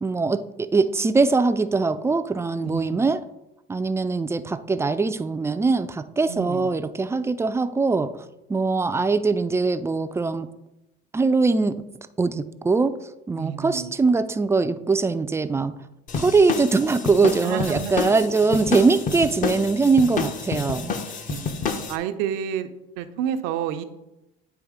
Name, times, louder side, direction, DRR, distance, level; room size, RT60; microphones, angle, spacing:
voice 1, 0.0-3.2 3.7-8.1 8.5-10.5 11.1-11.8 12.2-12.9 13.3-15.7 16.1-20.9, right 4 dB, 15° right, 0.3 m, -22 dB
voice 2, 2.6-3.0 6.3-6.7 13.4-13.9 17.4-17.9 21.3-21.5 21.9-22.7 23.0-23.8, right 9 dB, 90° right, 0.6 m, -29 dB
sound 1, 16.1-22.0, left 5 dB, 40° left, 0.7 m, -29 dB
9.3 x 3.2 x 4.9 m
cardioid pair, 115°, 20 cm